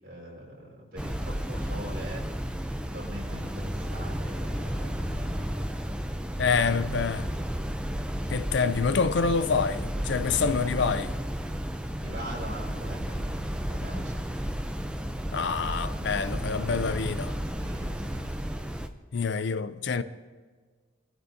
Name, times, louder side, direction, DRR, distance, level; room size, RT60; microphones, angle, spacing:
voice 1, 0.0-2.3 2.8-5.4 12.0-14.3 17.4-18.4, right 1 dB, 50° right, 5.2 m, -42 dB
sound 1, 1.0-18.9, equal, 5° right, 0.5 m, -33 dB
Bowed string instrument, 3.0-7.5, equal, 70° right, 2.0 m, -41 dB
voice 2, 6.4-7.3 8.3-11.1 15.3-17.4 19.1-20.0, left 5 dB, 60° left, 0.5 m, -27 dB
23.0 x 12.5 x 2.7 m
head